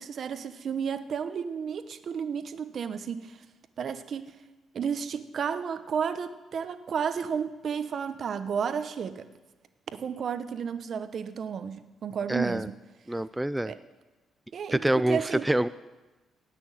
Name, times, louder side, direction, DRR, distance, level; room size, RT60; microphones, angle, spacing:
voice 1, 0.0-3.4 3.8-4.3 4.7-9.3 9.9-12.8 13.7-13.8 14.5-15.5, right 7 dB, 55° right, 11 dB, 0.9 m, -32 dB
voice 2, 12.3-12.7 13.1-13.7 14.7-15.7, right 1 dB, 10° right, 13 dB, 0.3 m, -26 dB
17.5 x 6.2 x 8.9 m, 1.2 s
cardioid pair, 90°, 0 cm